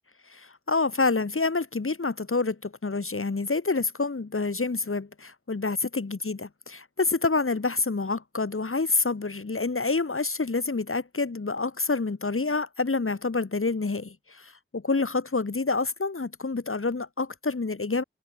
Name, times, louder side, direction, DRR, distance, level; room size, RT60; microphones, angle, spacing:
voice 1, 0.3-18.0, left 3 dB, 85° left, 4.0 m, -28 dB
wide cardioid pair, 60°, 21 cm